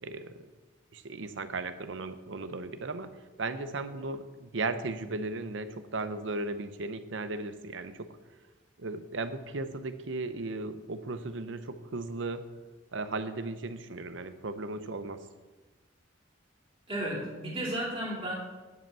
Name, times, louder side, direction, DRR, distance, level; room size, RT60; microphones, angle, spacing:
voice 1, 0.0-0.4 0.9-3.1 3.4-8.1 8.8-12.4 12.9-15.2, right 3 dB, 75° right, 10 dB, 0.7 m, -36 dB
voice 2, 16.9-18.3, right 1 dB, 30° right, -4 dB, 2.8 m, -33 dB
11.0 x 5.3 x 6.7 m, 1.2 s
head